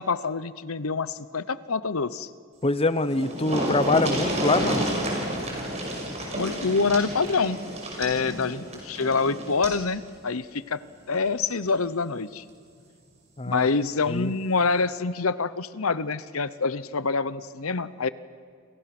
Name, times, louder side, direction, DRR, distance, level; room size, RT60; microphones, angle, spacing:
voice 1, 0.0-2.3 6.3-7.6 8.0-10.8 11.1-12.4 13.4-18.1, left 4 dB, 75° left, 15 dB, 0.9 m, -26 dB
voice 2, 2.6-4.8 13.4-13.7 14.1-14.3, left 2 dB, 25° left, 13 dB, 0.9 m, -24 dB
sound 1, 2.7-2.8 3.0-9.8 11.1-11.3 11.7-11.8, right 1 dB, 30° right, 5.9 m, -30 dB
29.0 x 26.0 x 6.1 m, 2.2 s
head